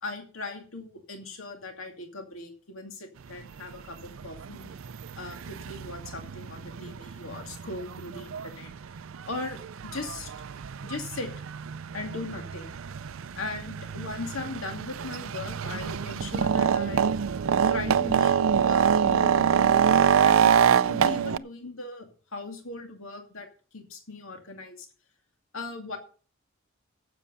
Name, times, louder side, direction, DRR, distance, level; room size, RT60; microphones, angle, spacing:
voice 1, 0.0-4.8 5.2-8.7 9.2-10.3 10.8-11.3 11.9-12.7 13.4-17.1 17.7-18.4 18.6-23.5 23.7-24.9 25.5-26.0, left 3 dB, 90° left, 4 dB, 2.5 m, -39 dB
sound 1, 3.3-3.4 3.7-21.4, right 7 dB, 75° right, 0.5 m, -26 dB
12.5 x 7.7 x 5.7 m, 0.41 s
head